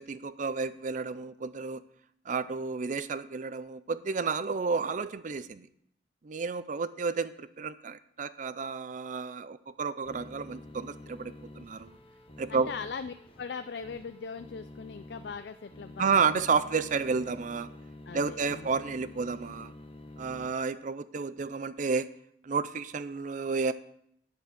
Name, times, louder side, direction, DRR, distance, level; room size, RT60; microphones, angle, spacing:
voice 1, 0.0-1.8 2.3-5.7 6.2-12.0 12.4-12.7 16.0-17.7 18.1-19.7 20.2-22.1 22.4-23.7, right 5 dB, 45° right, 14 dB, 0.5 m, -31 dB
sound 1, 10.1-20.5, left 1 dB, 30° left, 1.1 m, -48 dB
voice 2, 12.5-16.4 18.1-18.8, left 5 dB, 65° left, 10 dB, 0.4 m, -40 dB
9.7 x 8.2 x 6.0 m, 0.70 s
head